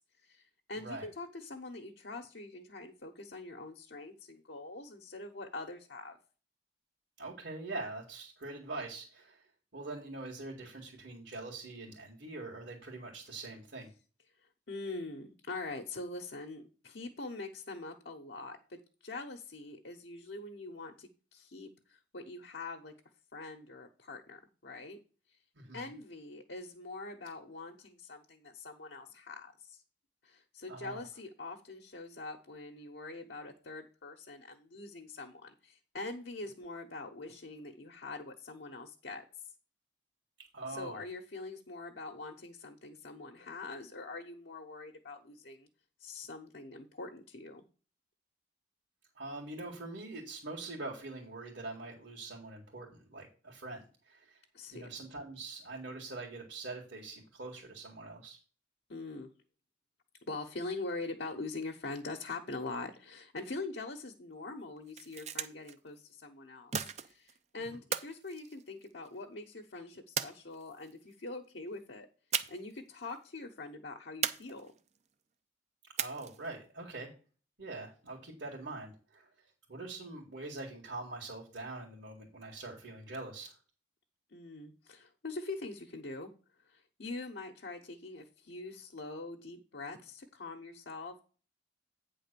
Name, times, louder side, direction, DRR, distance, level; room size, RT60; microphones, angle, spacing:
voice 1, 0.2-6.2 14.7-22.9 23.3-25.0 25.3-25.4 25.7-29.8 30.2-39.2 40.7-45.7 46.0-47.6 54.5-54.9 58.9-59.3 60.3-72.1 72.5-74.7 84.3-86.3 86.6-91.2, left 3 dB, 65° left, 3 dB, 1.0 m, -44 dB
voice 2, 0.8-1.1 7.2-9.4 9.7-13.9 25.6-25.9 30.7-31.0 40.5-41.0 49.2-54.4 54.7-58.4 76.0-77.1 77.6-79.3 79.7-83.6, right 2 dB, 70° right, -3 dB, 2.1 m, -43 dB
sound 1, 64.8-65.7 66.7-67.4 67.9-69.2 70.2-70.9 72.3-72.8 73.0-73.2 74.2-75.0 76.0-76.5, right 8 dB, 35° right, 0.5 m, -37 dB
8.9 x 3.8 x 6.8 m, 0.38 s
head